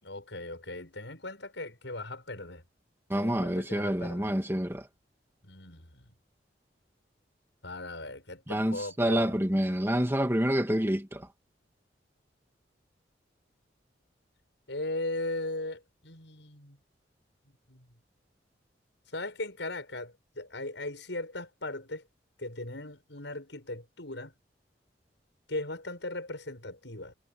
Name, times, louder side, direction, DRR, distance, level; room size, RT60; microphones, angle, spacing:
voice 1, 0.0-2.6 3.1-4.3 5.4-6.1 7.6-9.5 14.7-16.8 17.7-17.9 19.1-22.0 22.4-24.3 25.5-27.1, left 2 dB, 80° left, 6.8 m, -38 dB
voice 2, 3.1-4.9 8.5-11.3, equal, 15° right, 2.1 m, -28 dB
head